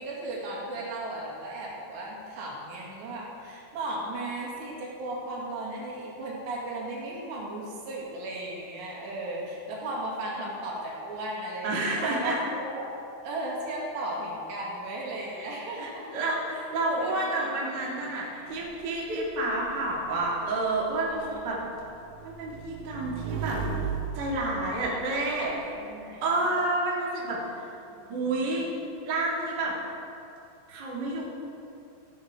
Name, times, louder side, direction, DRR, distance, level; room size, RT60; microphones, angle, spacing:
voice 1, 0.0-12.9 13.2-16.0 16.9-17.8 18.2-18.6 21.1-21.6 24.7-25.0 25.4-26.5 27.9-28.6, right 1 dB, 65° right, -4 dB, 4.2 m, -36 dB
voice 2, 11.6-12.4 15.8-21.6 22.2-23.6 24.1-25.5 26.2-27.7 28.1-28.7 29.0-29.7 30.7-31.3, right 2 dB, 40° right, -5 dB, 1.7 m, -29 dB
Motorcycle / Engine, 18.5-25.6, right 6 dB, 80° right, 3.3 m, -38 dB
15.0 x 11.0 x 4.8 m, 2.7 s
omnidirectional pair, 5.4 m